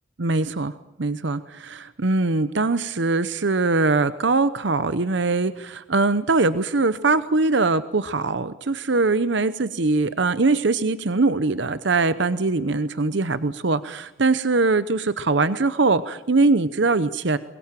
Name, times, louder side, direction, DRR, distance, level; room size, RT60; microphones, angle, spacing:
voice 1, 0.2-0.7 1.0-17.4, right 3 dB, 65° right, 14 dB, 0.8 m, -22 dB
23.5 x 21.5 x 9.0 m, 0.95 s
head